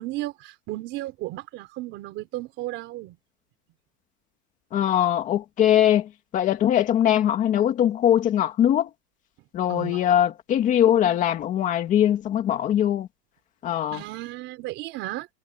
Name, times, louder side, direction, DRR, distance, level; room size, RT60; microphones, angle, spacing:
voice 1, 0.0-3.2 9.7-10.1 13.9-15.3, right 17 dB, 25° right, 4.0 m, -34 dB
voice 2, 4.7-8.9 9.5-13.1 13.6-14.0, left 10 dB, 15° left, 2.0 m, -21 dB
supercardioid pair, 180°, 48 cm